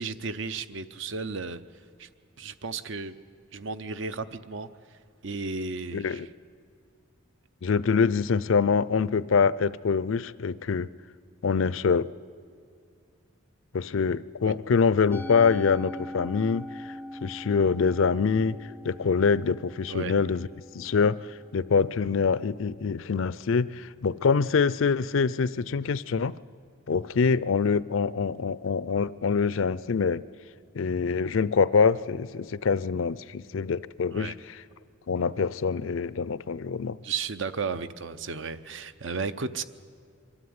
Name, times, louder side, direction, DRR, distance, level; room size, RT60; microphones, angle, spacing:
voice 1, 0.0-1.6 2.0-2.1 2.4-3.1 3.5-4.7 5.2-6.2 14.4-14.5 19.9-20.1 34.1-34.3 37.0-39.6, right 4 dB, 65° right, 13 dB, 0.7 m, -34 dB
voice 2, 5.9-6.3 7.6-10.9 11.4-12.1 13.7-16.9 17.2-20.5 20.7-26.3 26.9-30.2 30.7-34.6 35.1-37.0, left 5 dB, 70° left, 19 dB, 0.5 m, -25 dB
Musical instrument, 15.1-21.5, left 1 dB, 5° left, 0.5 m, -41 dB
24.0 x 13.0 x 9.5 m, 2.2 s
head